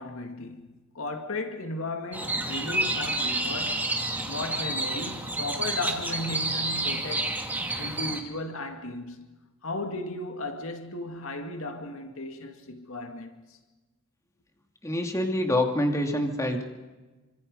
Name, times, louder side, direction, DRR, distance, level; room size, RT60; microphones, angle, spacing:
voice 1, 0.0-4.0 4.3-7.4 7.8-9.3 9.6-13.6, left 2 dB, 70° left, 2.2 m, -35 dB
sound 1, 2.1-8.2, right 1 dB, 10° right, 2.3 m, -29 dB
voice 2, 14.8-16.7, left 1 dB, 15° left, 2.5 m, -26 dB
28.5 x 25.5 x 5.5 m
head